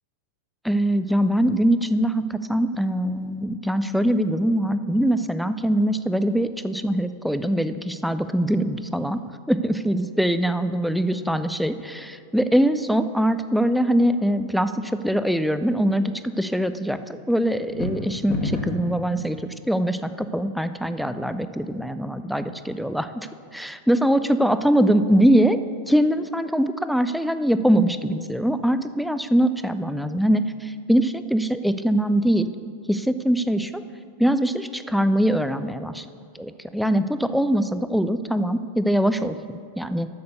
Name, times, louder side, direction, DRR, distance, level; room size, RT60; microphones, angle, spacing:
voice 1, 0.6-9.2 9.5-23.3 23.5-25.6 25.9-32.5 32.9-33.8 34.2-36.1 36.3-40.1, right 1 dB, ahead, 11 dB, 0.4 m, -22 dB
sound 1, 17.6-18.9, left 2 dB, 30° left, 1.6 m, -28 dB
8.0 x 6.7 x 6.6 m, 2.3 s
figure-of-eight pair, 90°, 0 cm